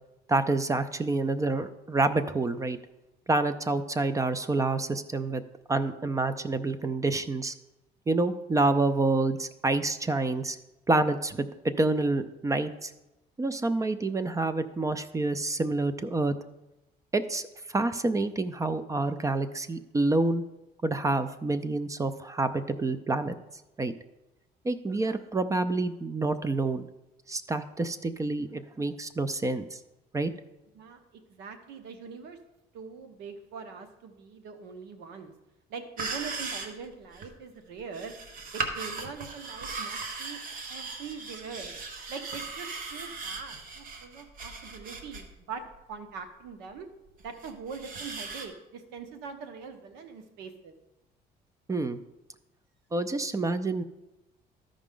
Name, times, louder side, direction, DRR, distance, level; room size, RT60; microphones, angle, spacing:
voice 1, 0.3-2.8 3.3-5.4 5.7-7.5 8.1-10.6 10.9-12.9 13.4-16.3 17.1-17.4 17.7-20.4 20.8-23.4 23.8-23.9 24.6-26.9 27.3-29.8 30.1-30.3 51.7-52.0 52.9-53.8, right 2 dB, 20° right, 12 dB, 0.4 m, -28 dB
voice 2, 31.3-32.4 32.7-35.3 35.7-38.1 38.5-40.4 40.7-41.7 42.1-45.6 45.9-46.9 47.2-50.7, right 5 dB, 85° right, 8 dB, 1.0 m, -42 dB
sound 1, 36.0-36.9 37.1-37.3 37.9-45.3 45.7-45.8 47.1-48.5, right 4 dB, 55° right, 1.1 m, -38 dB
13.5 x 5.0 x 3.8 m, 0.95 s
cardioid pair, 110°, 17 cm